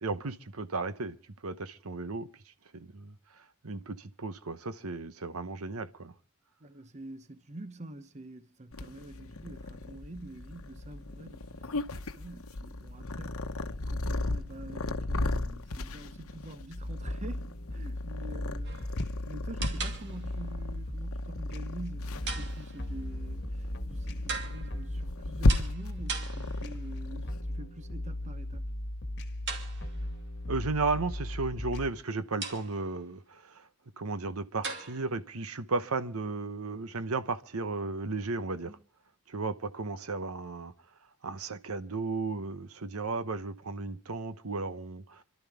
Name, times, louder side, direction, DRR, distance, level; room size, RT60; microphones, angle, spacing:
voice 1, 0.0-1.1 1.4-2.3 2.7-3.1 3.6-6.1 30.5-33.5 34.0-38.7 39.3-40.7 41.2-45.2, right 3 dB, 70° right, 0.9 m, -34 dB
voice 2, 6.6-13.4 13.9-18.8 19.3-28.7 38.6-38.8, right 1 dB, 30° right, 0.8 m, -46 dB
Purr, 8.7-27.4, left 2 dB, 65° left, 1.0 m, -35 dB
sound 1, 16.8-31.9, left 1 dB, 50° left, 1.5 m, -37 dB
sound 2, 18.6-19.0 19.6-20.5 22.3-23.0 24.3-24.9 25.5-26.9 29.5-30.2 32.4-33.0 34.6-35.2, right 4 dB, 55° right, 2.7 m, -40 dB
28.0 x 12.5 x 3.5 m
head